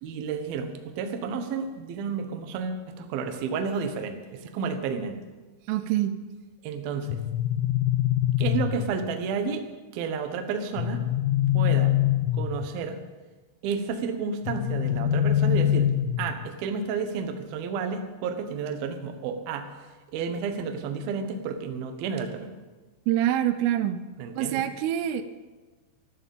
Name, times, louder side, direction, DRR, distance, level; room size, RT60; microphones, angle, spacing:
voice 1, 0.0-5.2 6.6-7.2 8.4-9.6 9.9-11.0 11.5-11.9 12.3-13.0 13.6-15.9 16.2-19.7 20.1-22.5 24.2-24.6, right 5 dB, 70° right, 6 dB, 2.5 m, -31 dB
voice 2, 5.7-6.1 23.1-24.0 24.4-25.2, right 12 dB, 85° right, 11 dB, 3.3 m, -25 dB
sound 1, 7.1-9.1 10.8-12.8 14.5-16.5, left 12 dB, 85° left, 2.3 m, -24 dB
13.0 x 13.0 x 7.2 m, 1.3 s
omnidirectional pair, 5.8 m